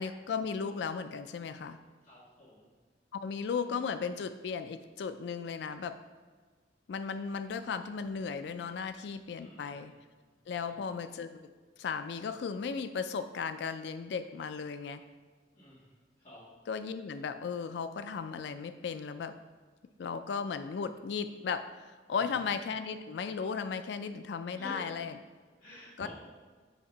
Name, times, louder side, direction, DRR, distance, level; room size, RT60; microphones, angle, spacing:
voice 1, 0.0-1.8 3.1-6.0 6.9-9.9 10.5-11.5 11.8-15.0 16.7-19.3 20.0-21.7 22.1-25.1 26.0-26.1, left 5 dB, 70° left, 10 dB, 0.3 m, -36 dB
voice 2, 2.0-2.7 9.3-10.0 10.6-10.7 15.5-15.9 16.2-16.4 22.1-22.4 24.5-24.8 25.6-26.1, left 1 dB, 45° left, -11 dB, 1.9 m, -50 dB
7.9 x 2.9 x 5.3 m, 1.5 s
head